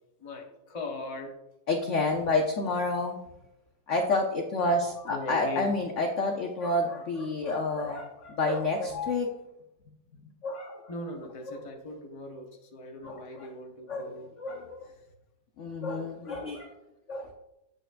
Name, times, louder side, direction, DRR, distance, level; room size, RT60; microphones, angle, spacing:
voice 1, 0.2-1.3 4.8-5.7 10.9-14.3, left 2 dB, 25° left, 1 dB, 0.8 m, -40 dB
voice 2, 1.7-3.2 3.9-9.3 10.4-10.9 11.5-11.7 13.0-13.5 13.9-14.9 15.6-16.7 17.1-17.3, left 2 dB, 55° left, 2 dB, 0.8 m, -29 dB
8.8 x 7.7 x 2.5 m, 0.90 s
omnidirectional pair, 2.0 m